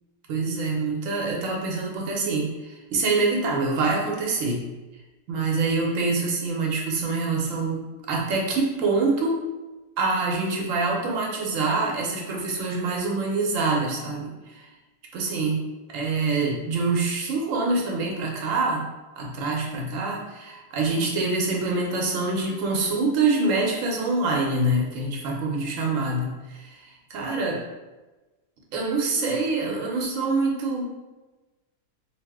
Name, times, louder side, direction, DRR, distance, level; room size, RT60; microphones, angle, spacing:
voice 1, 0.3-4.6 5.3-9.4 10.0-14.7 15.1-15.6 15.9-18.8 19.2-27.6 28.7-30.9, right 3 dB, 70° right, -1 dB, 1.0 m, -25 dB
2.8 x 2.0 x 3.4 m, 1.1 s
omnidirectional pair, 1.5 m